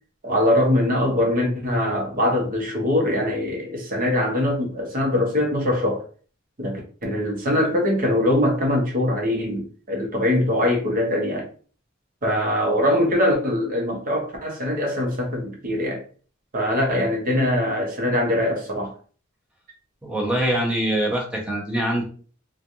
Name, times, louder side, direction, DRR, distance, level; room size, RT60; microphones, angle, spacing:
voice 1, 0.2-6.0 6.6-11.5 12.2-16.0 16.5-18.9, left 1 dB, 45° right, 0.9 m, -22 dB
voice 2, 20.0-22.0, right 1 dB, 5° right, 0.8 m, -23 dB
3.2 x 2.3 x 2.6 m
head